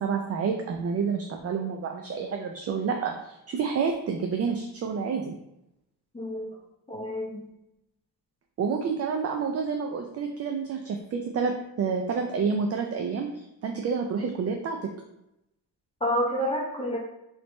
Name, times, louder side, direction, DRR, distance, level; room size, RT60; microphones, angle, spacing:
voice 1, 0.0-5.4 8.6-14.8, right 5 dB, 35° right, 3 dB, 0.4 m, -29 dB
voice 2, 6.1-6.5 6.9-7.4 16.0-17.0, equal, 15° left, -3 dB, 0.9 m, -28 dB
3.2 x 3.0 x 3.1 m, 0.85 s
cardioid pair, 105°, 43 cm